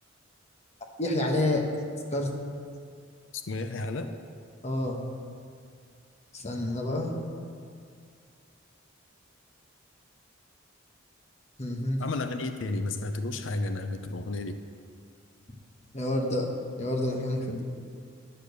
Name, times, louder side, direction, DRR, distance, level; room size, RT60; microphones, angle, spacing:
voice 1, 1.0-1.7 2.1-2.3 4.6-5.0 6.3-7.1 11.6-12.0 15.9-16.5 16.8-17.6, left 1 dB, 35° left, 1 dB, 1.2 m, -28 dB
voice 2, 3.3-4.1 12.0-14.6, left 2 dB, 70° left, 8 dB, 0.6 m, -32 dB
10.0 x 6.7 x 6.7 m, 2.2 s
head